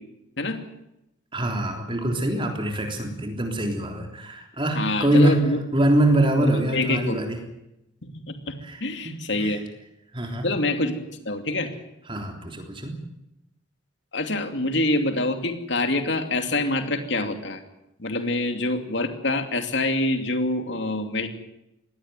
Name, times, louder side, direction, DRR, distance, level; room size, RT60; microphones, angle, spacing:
voice 1, 1.3-5.5 5.7-7.4 8.6-8.8 9.3-9.6 10.1-10.5 12.1-12.9, right 1 dB, 25° right, 3 dB, 3.6 m, -23 dB
voice 2, 4.7-5.6 6.4-7.2 8.0-9.6 10.4-11.0 11.2-11.7 14.1-17.6 18.0-21.3, left 2 dB, 65° left, 6 dB, 2.8 m, -26 dB
20.5 x 17.5 x 9.5 m, 0.87 s
head